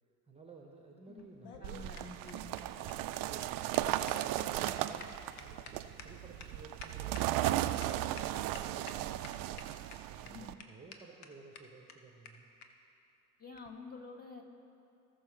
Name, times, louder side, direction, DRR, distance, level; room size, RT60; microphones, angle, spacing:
voice 1, 0.3-2.2 2.8-3.7 4.2-12.5, right 3 dB, 15° right, 0 dB, 1.1 m, -55 dB
voice 2, 1.1-2.5 4.6-4.7 10.2-10.5 13.4-14.4, left 3 dB, 20° left, 1 dB, 1.6 m, -49 dB
sound 1, 1.2-7.9 8.2-8.3 8.5-8.9 9.2-9.9 10.3-10.4 10.6-10.7 10.9-11.0 11.2-11.3 11.5-11.6 11.9-12.0 12.2-12.3 12.6-12.7 13.5-13.7, left 6 dB, 65° left, 1.1 m, -50 dB
ns carupgravel, 1.6-10.5, right 14 dB, 45° right, 0.5 m, -36 dB
18.5 x 6.3 x 3.4 m, 2.7 s
figure-of-eight pair, 60°, 48 cm